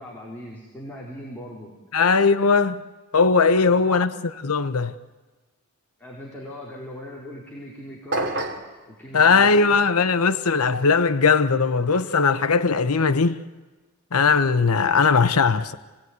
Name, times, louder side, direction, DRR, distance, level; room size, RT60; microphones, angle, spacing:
voice 1, 0.0-1.7 3.5-4.1 6.0-8.3 8.9-9.8, equal, 10° left, 4.3 m, -39 dB
voice 2, 1.9-2.8 3.1-4.1 4.4-4.9 9.1-13.4 14.1-15.8, left 4 dB, 80° left, 0.9 m, -19 dB
sound 1, 8.1-8.7, right 2 dB, 50° right, 2.7 m, -26 dB
27.0 x 19.0 x 9.6 m
head